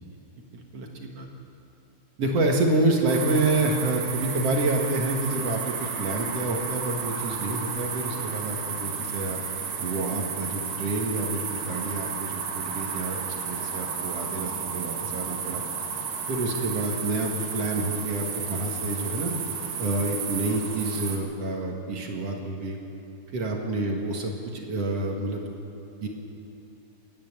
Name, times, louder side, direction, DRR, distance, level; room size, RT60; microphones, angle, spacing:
voice 1, 0.5-1.3 2.2-9.4 9.8-15.6 16.3-19.3 19.8-22.8 23.3-25.5 26.0-26.1, right 2 dB, 50° right, 1 dB, 2.3 m, -28 dB
sound 1, 3.1-21.2, right 6 dB, 80° right, 4.1 m, -32 dB
29.0 x 10.5 x 8.8 m, 2.7 s
omnidirectional pair, 4.5 m